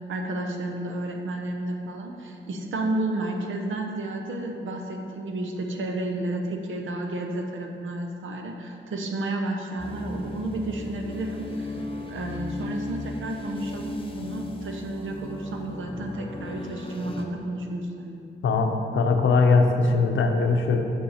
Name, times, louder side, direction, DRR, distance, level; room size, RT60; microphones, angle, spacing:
voice 1, 0.1-11.8 12.1-18.2, right 2 dB, 80° right, 2 dB, 0.8 m, -31 dB
sound 1, 9.8-17.2, left 2 dB, 25° left, 0.6 m, -36 dB
voice 2, 18.4-20.8, left 4 dB, 80° left, 4 dB, 0.6 m, -21 dB
6.4 x 5.6 x 4.2 m, 2.7 s
wide cardioid pair, 125°, 20 cm